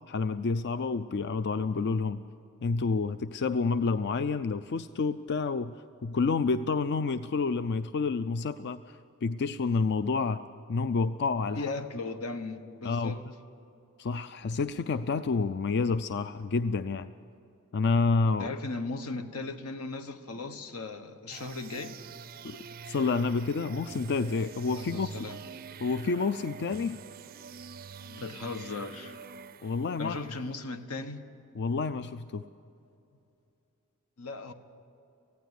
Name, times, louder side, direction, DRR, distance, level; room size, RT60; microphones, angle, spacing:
voice 1, 0.0-2.2 2.6-5.8 6.0-10.4 10.7-11.7 12.8-13.2 14.0-17.1 17.7-18.5 22.4-22.6 22.9-25.1 25.8-27.0 29.6-30.2 31.5-32.4, left 4 dB, 50° left, 12 dB, 0.4 m, -29 dB
voice 2, 11.5-13.2 18.4-22.0 24.7-25.4 28.0-29.2 30.0-31.3 34.2-34.5, left 3 dB, 80° left, 8 dB, 1.2 m, -37 dB
sound 1, 21.3-30.2, right 6 dB, 40° right, 0.4 m, -45 dB
18.5 x 15.5 x 9.8 m, 2.7 s
head